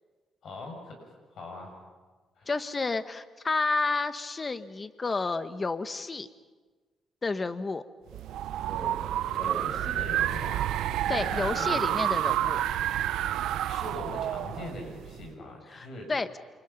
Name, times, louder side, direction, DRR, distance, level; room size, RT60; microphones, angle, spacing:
voice 1, 0.4-1.0 1.3-1.7 2.4-2.5 9.3-10.7 11.1-11.9 13.6-16.1, left 2 dB, 65° left, 2 dB, 7.5 m, -41 dB
voice 2, 2.5-6.3 7.2-7.8 11.1-12.6 15.7-16.4, left 3 dB, 30° left, 11 dB, 1.3 m, -30 dB
sound 1, 8.1-12.8, right 2 dB, 15° right, 4.2 m, -45 dB
sound 2, 8.1-15.3, right 12 dB, 85° right, 0.8 m, -29 dB
28.5 x 25.5 x 5.8 m, 1.3 s
cardioid pair, 90°, 0 cm